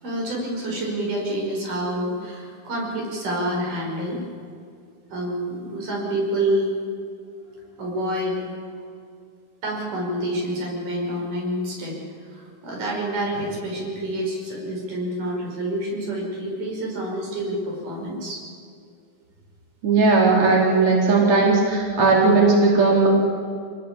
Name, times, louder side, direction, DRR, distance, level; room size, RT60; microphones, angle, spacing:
voice 1, 0.0-4.2 5.1-6.7 7.8-8.4 9.6-12.0 12.3-18.4, right 1 dB, 85° right, -2 dB, 7.2 m, -27 dB
voice 2, 19.8-23.1, right 3 dB, 45° right, -2 dB, 4.9 m, -17 dB
26.0 x 19.5 x 8.4 m, 2.4 s
omnidirectional pair, 3.6 m